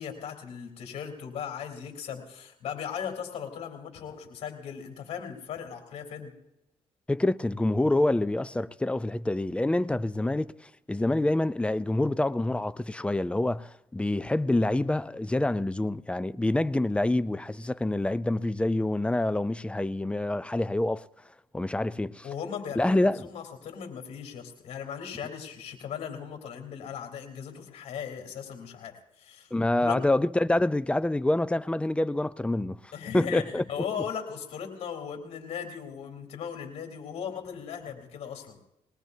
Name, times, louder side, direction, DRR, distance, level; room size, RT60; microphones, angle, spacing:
voice 1, 0.0-6.3 22.2-29.5 29.8-30.0 32.9-38.6, left 7 dB, 70° left, 3.8 m, -38 dB
voice 2, 7.1-21.0 21.5-22.2 22.8-23.3 29.5-32.8 33.1-33.6, left 1 dB, 10° left, 0.4 m, -26 dB
22.0 x 19.5 x 2.8 m
cardioid pair, 85°, 12 cm